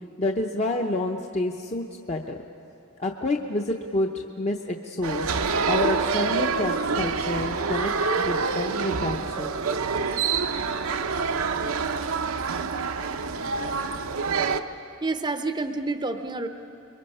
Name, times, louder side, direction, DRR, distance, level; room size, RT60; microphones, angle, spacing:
voice 1, 0.2-2.4 3.0-5.3 5.7-9.6, left 2 dB, 30° left, 2 dB, 0.8 m, -28 dB
sound 1, 5.0-14.6, right 5 dB, 75° right, 0.7 m, -26 dB
voice 2, 15.0-16.5, right 3 dB, 20° right, 8 dB, 0.6 m, -28 dB
27.0 x 22.5 x 5.5 m, 2.6 s
head